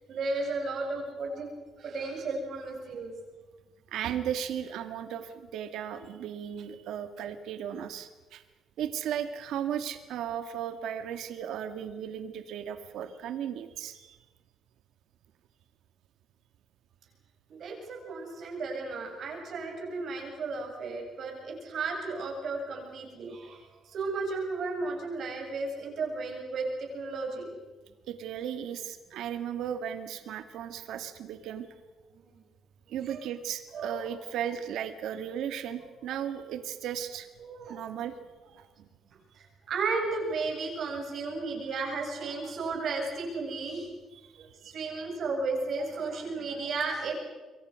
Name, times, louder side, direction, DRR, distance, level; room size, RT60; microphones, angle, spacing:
voice 1, 0.1-1.5 1.8-3.1 17.5-23.6 23.9-27.6 32.1-32.3 33.1-33.2 33.7-34.0 37.4-37.8 39.4-43.9 44.4-47.1, right 3 dB, 50° right, 1 dB, 7.7 m, -34 dB
voice 2, 3.9-8.4 8.8-14.2 28.1-31.7 32.9-37.3 37.7-38.1 38.5-38.9 44.1-44.2 44.6-44.7, right 9 dB, 75° right, 8 dB, 2.0 m, -36 dB
27.5 x 23.0 x 6.4 m, 1.2 s
cardioid pair, 150°, 0 cm